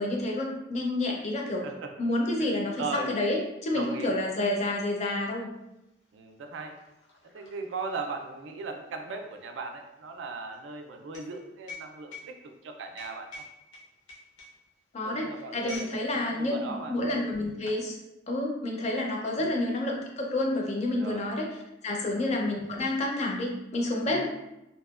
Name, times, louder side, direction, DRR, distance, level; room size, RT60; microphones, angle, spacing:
voice 1, 0.0-1.6 2.0-5.5 14.9-18.0 18.3-21.5 21.8-24.2, left 1 dB, 35° left, 0 dB, 0.4 m, -29 dB
voice 2, 2.4-3.1 3.7-4.2 6.1-6.8 7.3-12.4 12.6-13.3 15.0-15.9 16.2-17.0 19.4-19.6 21.0-21.3 22.0-22.3 24.1-24.2, right 4 dB, 85° right, 4 dB, 0.3 m, -38 dB
sound 1, 5.7-5.8 6.0-16.0 16.3-16.6 17.2-17.9, left 2 dB, 90° left, 0.7 m, -47 dB
2.8 x 2.1 x 2.3 m, 0.91 s
head